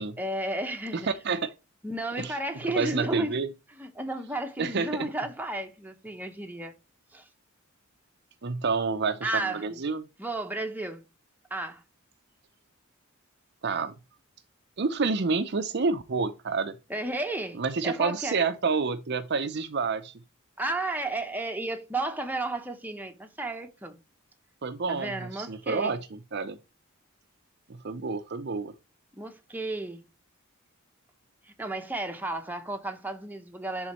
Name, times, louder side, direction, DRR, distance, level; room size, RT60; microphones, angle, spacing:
voice 1, 0.2-1.1 1.8-3.3 3.7-6.7 7.1-7.3 9.2-9.8 10.2-11.0 11.5-11.8 16.9-18.4 20.6-24.0 24.9-26.0 29.1-30.0 31.4-33.9, right 2 dB, 10° right, 0.9 m, -33 dB
voice 2, 0.9-1.5 2.2-2.3 2.7-3.5 4.6-5.1 8.4-10.1 13.6-13.9 14.8-16.7 17.6-20.1 24.6-26.6 27.8-28.7, right 4 dB, 50° right, 0.6 m, -29 dB
11.0 x 3.8 x 3.1 m
head